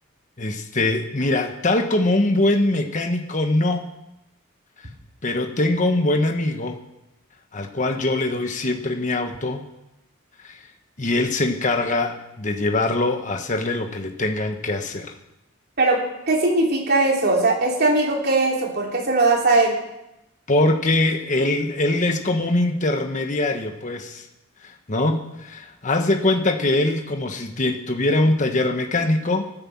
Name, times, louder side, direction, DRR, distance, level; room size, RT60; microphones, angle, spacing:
voice 1, 0.4-3.9 5.2-6.8 7.5-9.6 10.4-10.7 11.0-15.1 20.5-24.3 24.6-29.4, left 2 dB, 40° left, 5 dB, 1.2 m, -22 dB
voice 2, 16.3-19.8, right 2 dB, 50° right, -1 dB, 3.3 m, -19 dB
14.0 x 9.9 x 7.3 m, 0.91 s
head